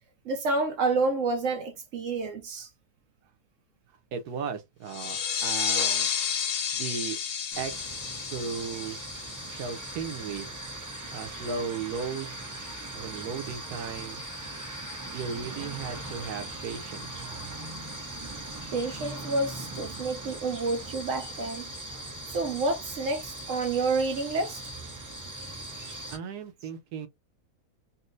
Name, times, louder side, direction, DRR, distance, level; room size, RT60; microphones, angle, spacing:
voice 1, 0.2-2.7 18.0-24.6, right 3 dB, 65° right, 0.8 m, -29 dB
voice 2, 4.1-6.1 6.7-7.2 7.6-8.0 8.3-9.0 9.5-10.5 11.1-12.4 12.9-14.2 15.1-17.1 26.1-27.1, right 6 dB, 90° right, 1.3 m, -36 dB
sound 1, 4.9-10.2, left 8 dB, 75° left, 0.5 m, -31 dB
sound 2, 7.5-26.2, right 1 dB, 20° right, 0.6 m, -40 dB
4.2 x 2.0 x 2.6 m
omnidirectional pair, 1.6 m